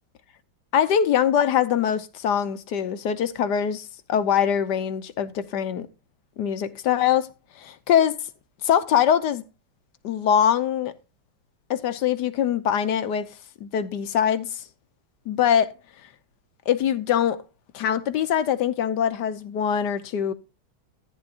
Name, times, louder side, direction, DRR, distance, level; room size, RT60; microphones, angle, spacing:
voice 1, 0.7-5.9 6.4-7.3 7.6-8.2 8.6-9.4 10.0-10.9 11.7-13.3 13.6-14.6 15.3-15.7 16.7-17.4 17.7-20.3, left 9 dB, 65° left, 1.4 m, -23 dB
14.0 x 9.9 x 2.5 m
omnidirectional pair, 2.1 m